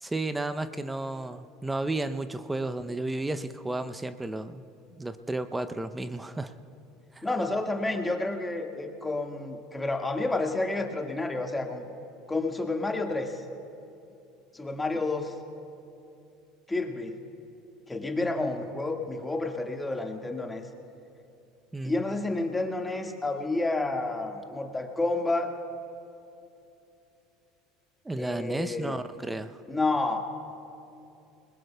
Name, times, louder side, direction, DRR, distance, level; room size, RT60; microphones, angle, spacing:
voice 1, 0.0-4.6 5.0-6.5 7.1-7.3 21.7-22.0 28.0-29.6, right 2 dB, 10° right, 11 dB, 0.7 m, -33 dB
voice 2, 7.2-11.8 12.3-13.4 14.5-15.4 16.7-17.2 17.9-20.6 21.8-25.5 28.2-29.0 29.7-30.2, left 2 dB, 10° left, 3 dB, 1.8 m, -30 dB
27.5 x 21.5 x 2.3 m, 2.7 s
hypercardioid pair, 70°, 0 cm